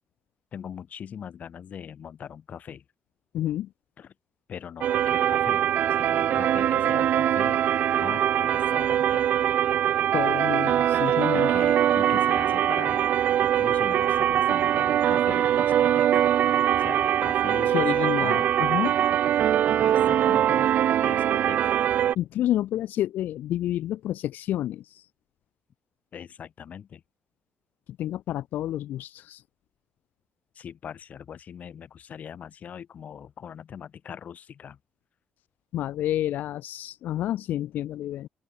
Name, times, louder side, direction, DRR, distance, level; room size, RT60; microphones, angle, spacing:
voice 1, 0.5-2.8 4.0-4.1 4.5-5.7 6.0-7.6 7.9-9.3 11.3-13.1 13.4-18.5 19.8-20.7 21.0-21.8 26.1-27.0 30.5-34.8, left 8 dB, 55° left, 5.5 m, -40 dB
voice 2, 3.3-3.7 10.1-11.5 17.7-19.0 22.1-25.1 28.0-29.4 35.7-38.3, left 13 dB, 80° left, 2.4 m, -29 dB
sound 1, 4.8-22.1, right 10 dB, 70° right, 0.9 m, -22 dB
open air
cardioid pair, 105°, 3 cm